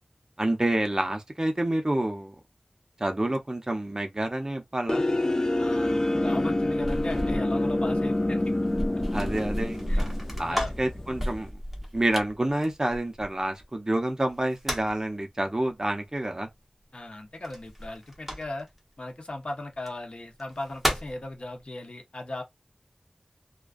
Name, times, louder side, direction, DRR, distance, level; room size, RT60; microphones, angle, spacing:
voice 1, 0.4-2.3 3.0-5.0 9.1-10.1 10.4-11.5 11.9-16.5, right 1 dB, 35° right, 0.6 m, -28 dB
sound 1, 4.9-11.5, left 1 dB, 35° left, 0.4 m, -27 dB
voice 2, 5.6-8.4 9.9-10.1 10.4-10.7 16.9-18.7 19.0-22.4, left 2 dB, 65° left, 0.8 m, -37 dB
sound 2, 6.2-13.6 14.3-15.1 17.4-18.8 19.7-19.9 20.4-21.2, equal, 5° right, 0.9 m, -33 dB
2.3 x 2.2 x 2.4 m
wide cardioid pair, 55°, 2 cm